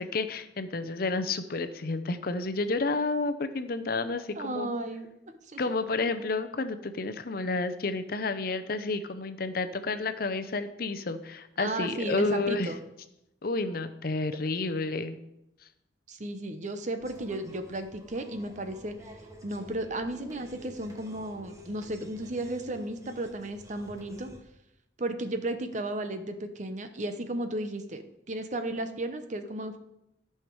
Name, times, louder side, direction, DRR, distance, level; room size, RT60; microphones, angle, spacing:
voice 1, 0.0-4.7 5.6-12.7 13.4-15.2, left 3 dB, 55° left, 10 dB, 0.7 m, -30 dB
voice 2, 4.4-5.1 5.5-5.6 11.6-12.8 16.1-18.9 19.4-24.3 25.0-29.8, right 1 dB, 40° right, 8 dB, 0.9 m, -34 dB
sound 1, 17.0-24.4, equal, 20° right, 1.2 m, -51 dB
13.5 x 5.7 x 4.7 m, 0.86 s
head